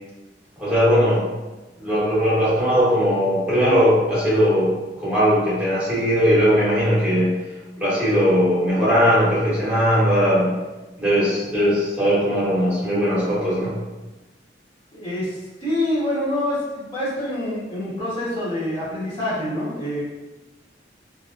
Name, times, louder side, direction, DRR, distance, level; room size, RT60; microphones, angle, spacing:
voice 1, 0.6-1.2 1.8-7.4 7.8-10.6 11.0-13.7, equal, 10° right, -11 dB, 1.2 m, -19 dB
voice 2, 14.9-20.0, left 1 dB, 30° left, -10 dB, 1.2 m, -26 dB
3.3 x 2.7 x 2.5 m, 1.1 s
head